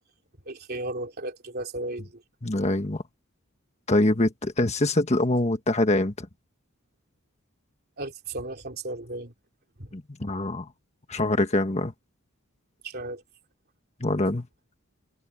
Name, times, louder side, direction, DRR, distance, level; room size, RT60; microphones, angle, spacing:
voice 1, 0.5-2.1 8.0-9.3 9.8-9.9 12.8-13.2, right 2 dB, 45° right, 2.9 m, -34 dB
voice 2, 2.4-3.0 3.9-6.3 9.9-10.7 11.1-11.9 14.0-14.5, left 1 dB, 30° left, 1.5 m, -24 dB
head